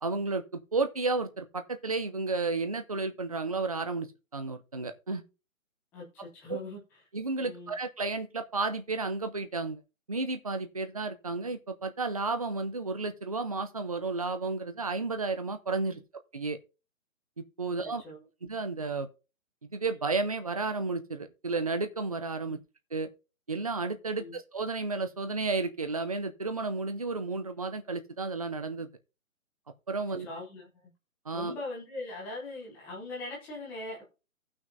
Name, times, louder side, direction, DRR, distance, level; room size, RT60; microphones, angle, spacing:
voice 1, 0.0-4.1 4.3-5.2 6.5-6.6 7.1-9.8 10.1-16.0 16.3-16.6 17.4-18.0 18.4-19.1 19.6-22.6 22.9-23.1 23.5-28.9 29.9-30.3 31.3-31.5, right 3 dB, 30° right, 0.5 m, -32 dB
voice 2, 5.9-6.8 7.4-7.7 18.0-18.2 22.4-22.6 24.2-24.3 30.1-30.7 31.3-34.0, left 2 dB, 5° left, 0.8 m, -40 dB
16.0 x 6.1 x 2.7 m
hypercardioid pair, 165°, 41 cm